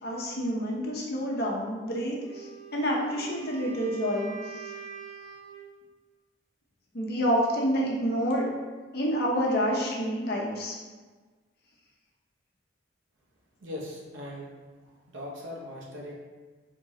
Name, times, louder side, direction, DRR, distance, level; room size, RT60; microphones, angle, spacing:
voice 1, 0.0-2.5 2.7-4.6 6.9-8.5 8.9-10.7, equal, 55° left, -2 dB, 0.8 m, -28 dB
Wind instrument woodwind instrument, 2.2-5.7, right 6 dB, 30° right, 0.9 m, -44 dB
voice 2, 13.6-14.5 14.8-16.1, left 1 dB, 75° right, -2 dB, 0.9 m, -40 dB
3.7 x 3.1 x 3.7 m, 1.4 s
head